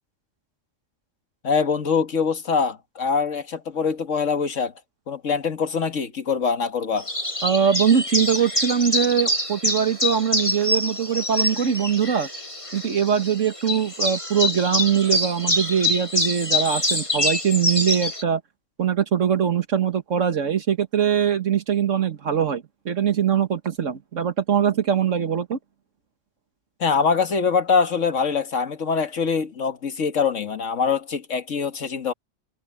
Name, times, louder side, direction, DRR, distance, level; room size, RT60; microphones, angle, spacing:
voice 1, 1.4-4.7 5.1-7.1 26.8-32.1, left 5 dB, 80° left, 1.9 m, -23 dB
sound 1, 7.0-18.2, left 1 dB, 25° left, 3.4 m, -26 dB
voice 2, 7.4-12.3 12.7-18.4 18.8-25.6, right 8 dB, 80° right, 1.8 m, -22 dB
omnidirectional pair, 1.3 m